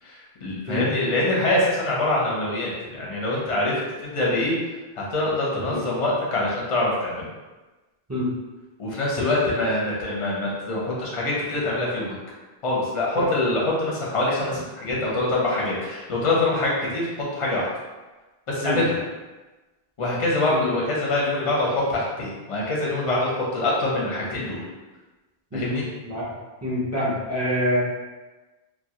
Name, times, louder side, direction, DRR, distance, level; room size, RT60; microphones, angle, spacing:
voice 1, 0.0-3.7 4.0-4.5 5.0-7.2 8.8-12.1 12.6-17.1 17.4-17.7 18.5-19.0 20.0-24.6 25.5-25.8, left 2 dB, 40° left, -5 dB, 0.5 m, -24 dB
voice 2, 26.6-27.8, equal, 25° right, -8 dB, 0.4 m, -26 dB
2.2 x 2.0 x 2.7 m, 1.2 s
omnidirectional pair, 1.1 m